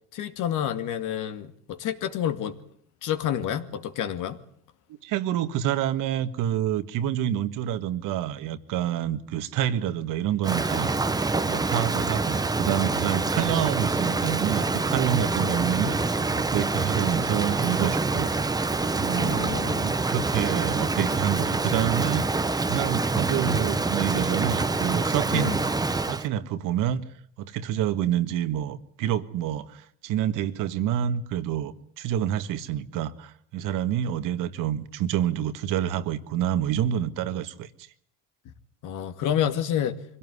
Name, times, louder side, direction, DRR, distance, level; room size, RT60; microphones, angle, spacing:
voice 1, 0.1-2.6 3.0-4.4 15.4-16.0 19.1-19.9 25.3-25.6 38.8-40.0, left 10 dB, 70° left, 9 dB, 2.3 m, -29 dB
voice 2, 5.0-10.9 11.4-18.3 18.9-22.2 22.7-25.6 26.0-27.0 27.4-37.7, right 10 dB, 75° right, 10 dB, 1.8 m, -28 dB
Rain, 10.4-26.3, right 3 dB, 10° right, 1.0 m, -26 dB
24.0 x 17.0 x 9.7 m, 0.64 s
cardioid pair, 125°, 32 cm